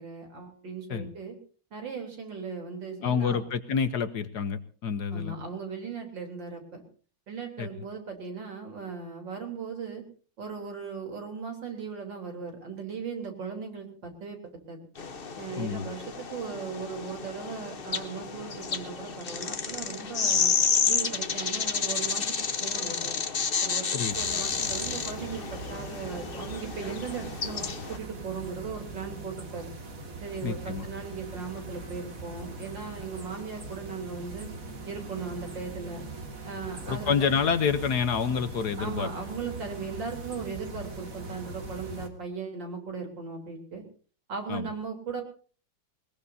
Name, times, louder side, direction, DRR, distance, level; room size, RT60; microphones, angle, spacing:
voice 1, 0.0-1.3 1.7-3.4 5.1-6.8 7.3-10.0 10.4-14.8 15.4-20.5 20.9-22.3 22.6-23.2 23.6-29.7 30.2-34.5 34.9-36.1 36.4-37.3 38.8-43.8 44.3-45.2, right 5 dB, 65° right, 3 dB, 4.2 m, -38 dB
voice 2, 3.0-5.4 7.6-7.7 15.6-15.9 23.9-24.2 30.4-30.9 36.9-39.1 44.5-44.7, left 6 dB, 60° left, 11 dB, 1.4 m, -28 dB
sound 1, 15.0-28.0, left 6 dB, 35° left, 1.0 m, -30 dB
sound 2, 24.1-42.1, right 2 dB, 45° right, 2.5 m, -41 dB
21.0 x 20.5 x 2.7 m, 0.41 s
omnidirectional pair, 2.1 m